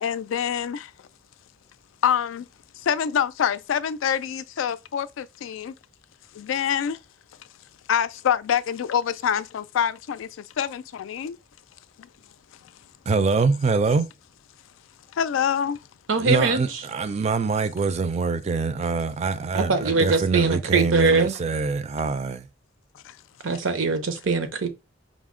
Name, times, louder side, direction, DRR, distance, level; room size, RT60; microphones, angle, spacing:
voice 1, 0.0-0.9 2.0-2.5 2.8-5.7 6.4-7.0 7.9-11.4 12.0-12.1 15.2-15.8, left 8 dB, 90° left, 0.3 m, -25 dB
voice 2, 13.1-14.1 16.2-22.5, right 4 dB, 35° right, 0.4 m, -24 dB
voice 3, 16.1-16.6 19.5-21.3 23.4-24.7, right 4 dB, 90° right, 0.7 m, -22 dB
4.9 x 2.0 x 3.6 m
head